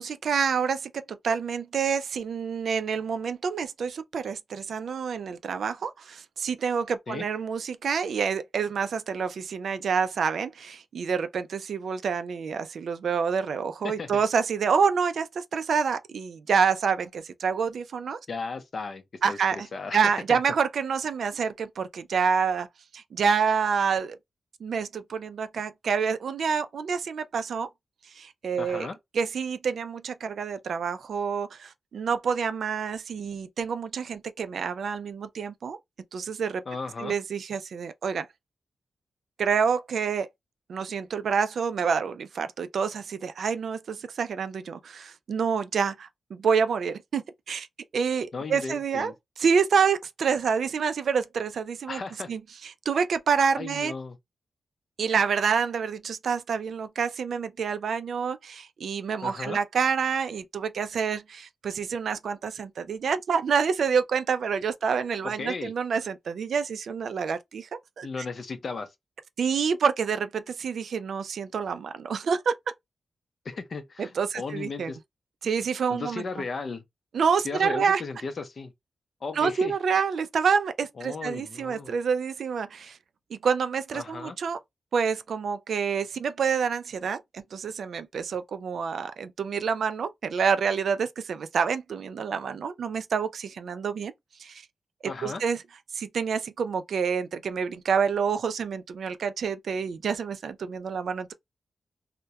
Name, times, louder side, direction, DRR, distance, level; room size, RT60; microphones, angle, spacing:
voice 1, 0.0-18.2 19.2-19.7 19.9-22.7 22.9-24.2 24.6-27.7 28.2-28.9 29.1-35.8 36.1-36.6 37.0-38.3 39.4-40.3 40.7-47.7 47.9-49.1 49.4-52.0 52.3-53.9 55.0-67.7 68.0-68.1 69.4-72.5 74.0-74.9 75.4-76.2 77.1-78.0 79.4-83.0 83.3-84.6 84.9-94.1 94.4-94.6 95.2-95.6 95.9-101.3, right 6 dB, 75° right, 0.3 m, -27 dB
voice 2, 18.3-19.4 19.7-20.0 20.3-20.4 28.6-29.0 36.7-37.1 48.3-49.1 51.9-52.3 53.6-54.2 59.2-59.6 65.2-65.7 68.0-68.9 73.4-75.0 75.9-76.8 77.4-78.7 79.2-79.7 81.0-82.0 83.9-84.4 95.0-95.4, left 4 dB, 50° left, 0.5 m, -35 dB
2.2 x 2.1 x 2.7 m
wide cardioid pair, 145°, 0 cm